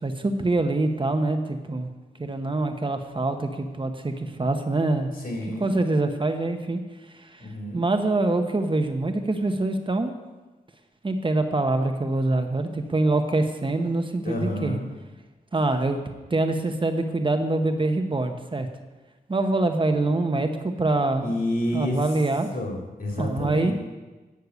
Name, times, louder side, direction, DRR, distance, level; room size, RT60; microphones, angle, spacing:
voice 1, 0.0-1.9 2.2-5.1 5.6-6.8 7.1-7.5 7.7-10.1 11.0-14.8 15.5-16.0 16.3-18.7 19.3-21.3 21.7-22.5 23.2-23.7, right 2 dB, 30° right, 6 dB, 1.0 m, -25 dB
voice 2, 5.2-5.7 7.4-7.8 14.2-14.9 21.2-22.0 22.5-23.7, left 1 dB, 60° left, 0 dB, 3.0 m, -29 dB
9.7 x 6.6 x 8.0 m, 1.2 s
cardioid pair, 70°, 16 cm